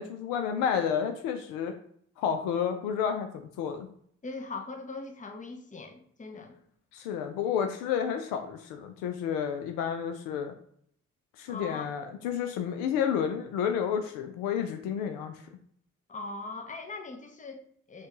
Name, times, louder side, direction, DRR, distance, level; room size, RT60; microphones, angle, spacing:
voice 1, 0.0-1.7 2.2-3.9 6.9-10.5 11.4-15.4, left 8 dB, 75° left, 6 dB, 0.5 m, -30 dB
voice 2, 4.2-6.5 11.5-11.9 16.1-18.1, left 3 dB, 20° left, 4 dB, 0.8 m, -40 dB
4.3 x 2.2 x 3.0 m, 0.63 s
hypercardioid pair, 45°, 34 cm